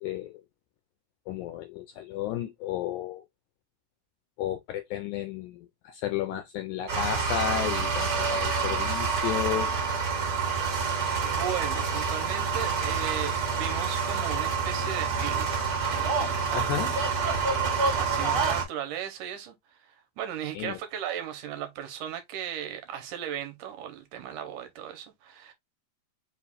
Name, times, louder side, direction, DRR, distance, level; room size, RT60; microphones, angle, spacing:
voice 1, 0.0-0.4 1.3-3.2 4.4-9.8 16.5-16.9 20.5-20.8, left 11 dB, 90° left, 1.7 m, -33 dB
sound 1, 6.9-18.6, right 5 dB, 40° right, 1.4 m, -27 dB
voice 2, 11.2-17.3 18.0-25.5, right 10 dB, 75° right, 2.0 m, -37 dB
5.2 x 2.3 x 3.4 m
omnidirectional pair, 4.0 m